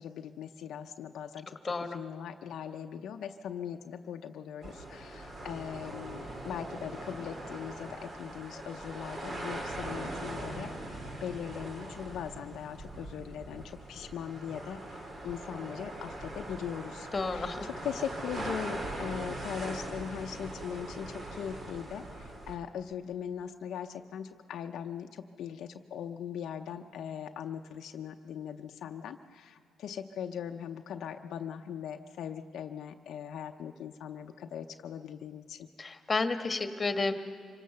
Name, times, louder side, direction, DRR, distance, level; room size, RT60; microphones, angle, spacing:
voice 1, 0.0-35.7, left 8 dB, 75° left, 5 dB, 0.7 m, -40 dB
voice 2, 1.6-2.0 17.1-17.7 35.8-37.1, left 3 dB, 30° left, 6 dB, 1.5 m, -31 dB
sound 1, 4.6-22.5, right 1 dB, 45° right, 3.2 m, -41 dB
25.5 x 17.5 x 6.9 m, 2.3 s
cardioid pair, 90°, 0 cm